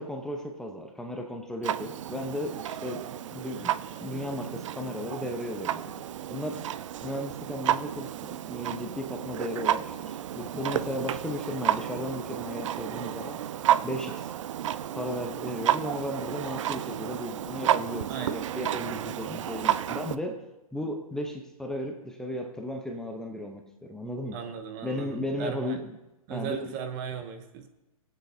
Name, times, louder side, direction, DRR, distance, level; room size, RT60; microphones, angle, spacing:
voice 1, 0.0-3.7 4.0-5.9 6.3-6.7 7.0-13.4 13.8-14.3 14.9-20.4 20.7-24.4 24.8-25.9 26.3-26.7, left 1 dB, 5° left, 2 dB, 1.0 m, -35 dB
Clock, 1.6-20.2, right 11 dB, 55° right, 0.5 m, -31 dB
voice 2, 18.1-18.5 24.3-25.8 26.3-27.7, right 6 dB, 35° right, 7 dB, 1.1 m, -37 dB
21.0 x 8.6 x 2.8 m, 0.98 s
figure-of-eight pair, 120°, 19 cm